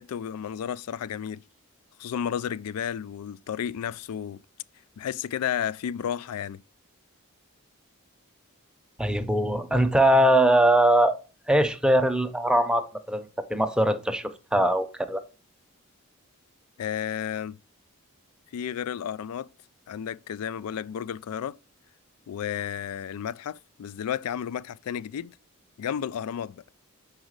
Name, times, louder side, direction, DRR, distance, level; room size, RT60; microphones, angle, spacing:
voice 1, 0.0-1.4 2.0-4.4 5.0-6.6 16.8-17.6 18.5-19.5 19.9-21.6 22.3-25.3 25.8-26.6, left 9 dB, 80° left, 0.3 m, -32 dB
voice 2, 9.0-11.1 11.5-15.2, right 1 dB, 5° right, 0.6 m, -22 dB
6.2 x 4.9 x 6.4 m
head